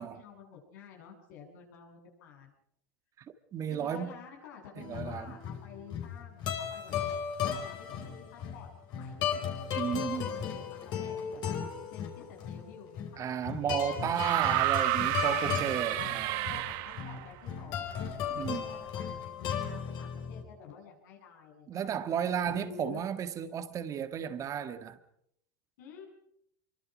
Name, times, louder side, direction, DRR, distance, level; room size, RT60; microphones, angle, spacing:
voice 1, 0.0-2.5 3.7-7.1 7.4-11.6 11.9-14.6 15.3-19.1 19.4-21.9 22.2-23.0 25.8-26.1, left 6 dB, 80° left, 7.8 m, -50 dB
voice 2, 3.5-4.1 4.8-5.3 9.7-10.4 13.2-16.4 18.3-18.7 21.7-25.0, right 8 dB, 35° right, 1.6 m, -33 dB
sound 1, 4.8-20.4, left 8 dB, 50° left, 4.9 m, -36 dB
sound 2, 14.1-17.2 18.5-18.6, right 16 dB, 60° right, 1.7 m, -30 dB
25.5 x 24.0 x 5.2 m
supercardioid pair, 120°, 10 cm